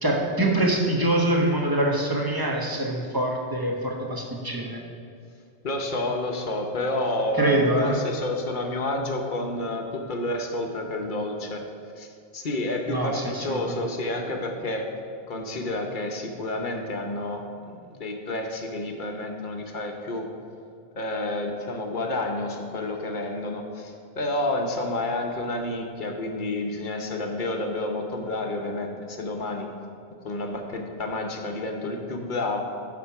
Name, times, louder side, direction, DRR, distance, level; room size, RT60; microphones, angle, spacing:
voice 1, 0.0-4.8 7.3-8.0 12.9-13.9, right 1 dB, 20° right, 0 dB, 0.9 m, -24 dB
voice 2, 5.6-11.6 12.0-12.1 12.3-14.9 15.3-20.3 21.0-29.7 30.2-32.6, left 1 dB, 45° left, 3 dB, 0.9 m, -30 dB
9.9 x 4.4 x 5.9 m, 2.5 s
omnidirectional pair, 1.2 m